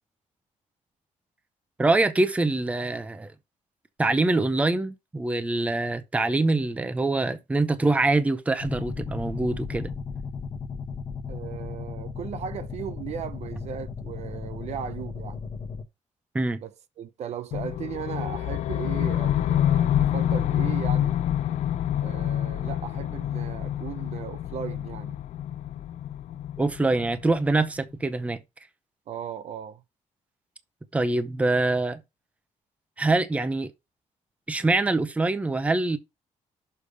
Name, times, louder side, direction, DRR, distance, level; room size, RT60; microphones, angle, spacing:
voice 1, 1.8-3.3 4.0-9.9 16.3-16.6 26.6-28.4 30.9-32.0 33.0-33.7 34.5-36.0, right 2 dB, 10° right, 0.7 m, -24 dB
sound 1, 8.6-15.8, left 5 dB, 45° left, 1.0 m, -36 dB
voice 2, 11.3-15.4 16.6-21.2 22.0-25.2 29.1-29.8, right 9 dB, 60° right, 0.7 m, -37 dB
sound 2, 17.5-27.6, left 11 dB, 70° left, 0.4 m, -27 dB
6.6 x 5.1 x 5.1 m
cardioid pair, 170°, 13 cm